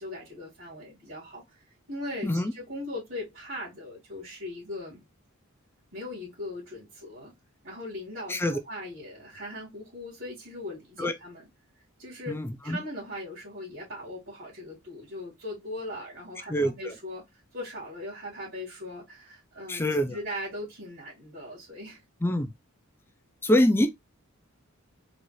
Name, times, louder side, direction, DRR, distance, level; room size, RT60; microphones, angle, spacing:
voice 1, 0.0-5.0 5.9-7.3 7.6-11.5 12.0-22.0, left 1 dB, 65° right, 2.2 m, -39 dB
voice 2, 8.3-8.6 11.0-11.1 12.3-12.8 16.5-16.9 19.7-20.2 22.2-22.5 23.4-23.9, left 1 dB, 10° left, 0.4 m, -25 dB
4.1 x 2.5 x 3.1 m
head